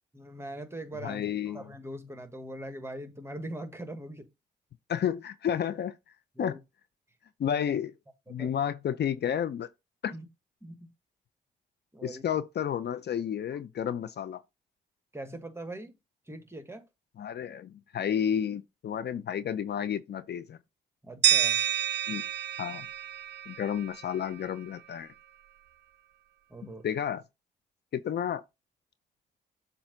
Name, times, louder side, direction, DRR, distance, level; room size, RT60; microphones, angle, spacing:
voice 1, 0.1-4.3 6.3-6.6 7.5-7.6 8.3-8.5 10.1-10.3 10.6-10.9 11.9-12.2 15.1-16.0 16.3-16.9 21.0-21.6 26.5-26.8, right 1 dB, 15° right, 1.4 m, -41 dB
voice 2, 1.0-1.6 4.9-5.9 6.4-6.5 7.4-7.9 8.3-9.7 10.0-10.1 12.0-14.4 17.2-20.6 22.1-22.2 22.6-22.9 23.5-25.1 26.8-27.2 27.9-28.4, left 9 dB, 55° left, 0.6 m, -31 dB
sound 1, 21.2-24.2, right 10 dB, 60° right, 0.5 m, -28 dB
7.2 x 2.7 x 5.1 m
supercardioid pair, 55°, 20 cm